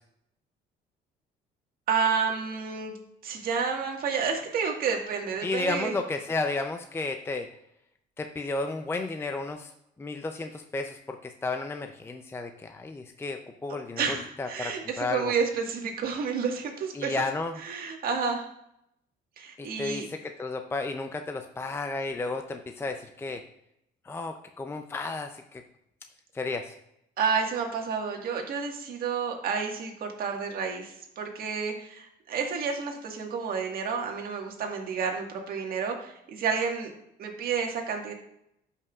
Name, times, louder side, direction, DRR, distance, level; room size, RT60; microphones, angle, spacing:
voice 1, 1.9-2.9 3.2-5.9 14.0-17.3 17.6-18.5 19.4-20.1 27.2-36.9 37.2-38.1, right 6 dB, 60° right, 2 dB, 1.6 m, -30 dB
voice 2, 5.4-7.5 8.2-9.7 10.0-15.3 16.9-17.6 19.6-23.4 24.0-25.6 26.3-26.7, left 3 dB, 15° left, 5 dB, 0.5 m, -33 dB
12.5 x 5.5 x 2.4 m, 0.78 s
cardioid pair, 110°, 17 cm